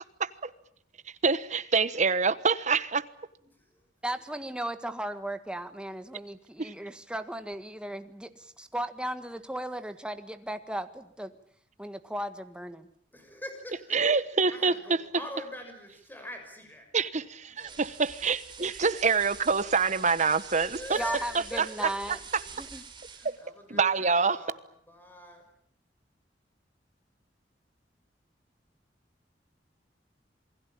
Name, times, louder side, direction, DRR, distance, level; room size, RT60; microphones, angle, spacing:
voice 1, 1.2-3.0 6.6-6.7 13.9-14.7 16.9-21.0 23.2-23.3 23.7-24.4, right 5 dB, 45° right, 1.2 m, -26 dB
voice 2, 4.0-11.3 11.8-12.9 21.0-22.2 22.6-22.8, right 1 dB, 5° right, 1.6 m, -36 dB
voice 3, 13.1-14.0 14.5-16.9 17.5-17.8 20.7-22.5 23.1-24.6 24.9-25.4, left 1 dB, 10° left, 6.2 m, -43 dB
sound 1, 17.6-23.5, right 6 dB, 25° right, 4.0 m, -46 dB
28.0 x 20.5 x 8.9 m
head